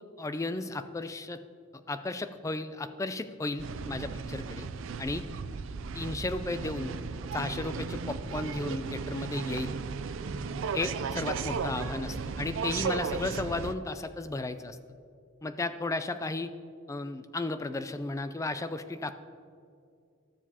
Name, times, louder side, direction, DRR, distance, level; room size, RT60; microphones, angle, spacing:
voice 1, 0.2-1.4 1.9-4.7 5.0-5.2 5.9-7.0 7.3-9.7 10.7-14.8 15.4-16.5 16.9-19.1, left 2 dB, 15° left, 10 dB, 0.3 m, -34 dB
sound 1, 3.6-13.7, right 5 dB, 70° right, 0.4 m, -35 dB
13.0 x 7.1 x 2.8 m, 2.4 s
head